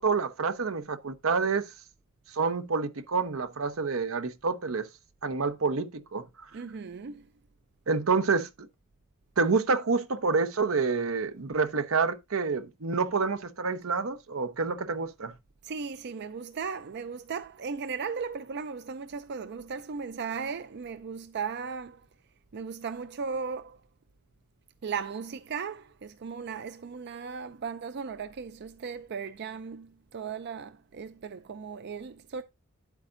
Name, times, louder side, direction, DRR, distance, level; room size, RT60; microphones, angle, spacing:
voice 1, 0.0-1.7 2.3-4.9 5.2-6.2 7.9-8.5 9.4-15.3, right 4 dB, 80° right, 0.8 m, -28 dB
voice 2, 6.5-7.3 15.6-22.1 22.5-23.8 24.8-32.4, right 5 dB, 55° right, 0.5 m, -36 dB
9.7 x 8.2 x 2.6 m
head